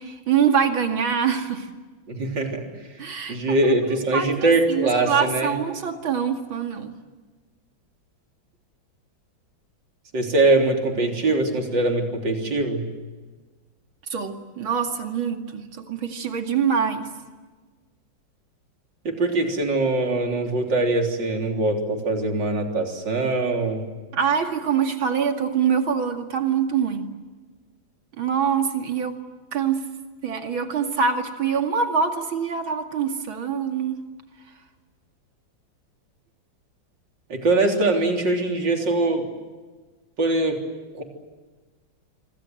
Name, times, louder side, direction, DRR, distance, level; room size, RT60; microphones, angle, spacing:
voice 1, 0.0-1.7 3.0-3.4 3.6-6.9 14.1-17.1 24.1-27.1 28.2-29.2 29.5-29.9 30.2-34.0, right 7 dB, 80° right, 5 dB, 3.1 m, -24 dB
voice 2, 2.1-2.6 3.3-5.5 10.1-12.8 19.0-23.8 37.3-39.3 40.2-40.6 40.9-41.0, right 2 dB, 60° right, 3 dB, 4.2 m, -22 dB
26.0 x 25.5 x 7.7 m, 1.3 s
omnidirectional pair, 2.2 m